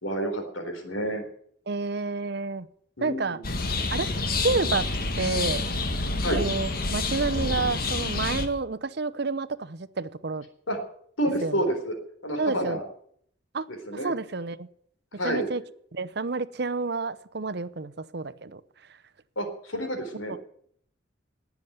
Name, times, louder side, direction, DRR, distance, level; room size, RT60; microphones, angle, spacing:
voice 1, 0.0-1.2 3.0-3.5 6.2-6.4 10.7-10.8 11.2-11.9 12.2-12.8 13.7-14.1 15.2-15.5 19.4-20.3, right 1 dB, 85° left, 4 dB, 4.0 m, -29 dB
voice 2, 1.7-2.7 3.0-3.4 3.9-4.1 4.4-4.9 5.2-5.6 6.3-10.4 11.4-11.6 12.4-12.8 13.5-13.7 14.0-14.7 15.2-15.6 15.9-18.6, right 3 dB, 55° right, 15 dB, 0.8 m, -29 dB
sound 1, 3.4-8.5, left 3 dB, 50° left, 1.6 m, -28 dB
18.5 x 7.2 x 9.5 m, 0.65 s
head